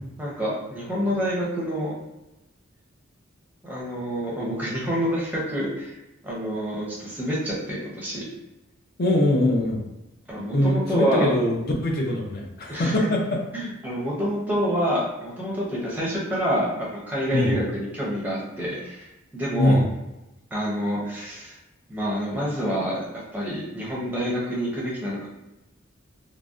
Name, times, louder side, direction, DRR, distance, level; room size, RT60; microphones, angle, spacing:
voice 1, 0.2-1.9 3.6-6.0 6.2-8.3 10.3-11.4 12.7-13.1 13.5-19.1 19.3-19.8 20.5-21.6 21.9-23.0 23.3-25.3, equal, 10° right, -5 dB, 0.5 m, -27 dB
voice 2, 9.0-9.9 10.5-13.4 17.3-17.6 19.6-19.9, left 1 dB, 45° left, 0 dB, 0.4 m, -22 dB
2.6 x 2.0 x 2.3 m, 0.98 s
head